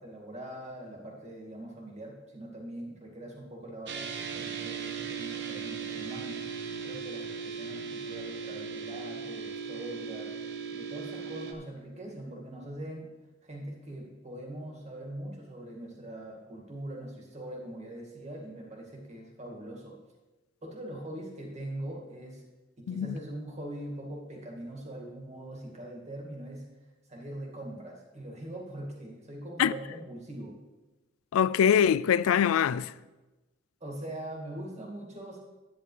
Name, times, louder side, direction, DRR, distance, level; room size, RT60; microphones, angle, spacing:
voice 1, 0.0-6.4 6.8-10.4 10.7-13.1 13.4-20.0 20.6-22.4 22.8-26.7 27.1-30.6 33.8-35.4, right 1 dB, 35° right, 2.2 m, -42 dB
sound 1, 3.9-11.5, right 6 dB, 60° right, 0.9 m, -38 dB
voice 2, 31.3-32.9, left 8 dB, 85° left, 0.3 m, -23 dB
11.0 x 9.7 x 3.3 m
head